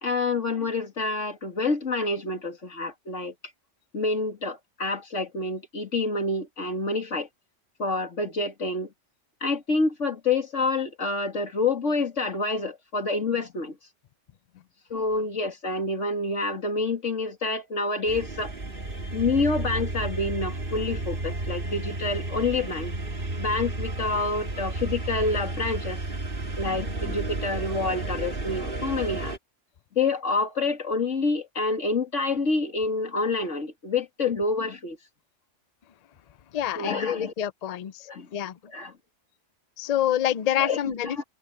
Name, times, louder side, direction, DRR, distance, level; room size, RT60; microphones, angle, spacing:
voice 1, 0.0-3.3 3.9-7.3 7.8-8.9 9.4-13.8 14.9-18.5 19.1-22.9 23.4-26.0 26.6-29.3 29.9-35.0 36.7-37.3 38.1-38.3 38.7-38.9 40.6-40.8 41.0-41.2, left 3 dB, 85° left, 3.1 m, -27 dB
sound 1, 18.1-29.4, right 2 dB, 45° right, 2.2 m, -32 dB
voice 2, 36.5-38.6 39.8-41.2, left 11 dB, 50° left, 0.5 m, -27 dB
omnidirectional pair, 1.2 m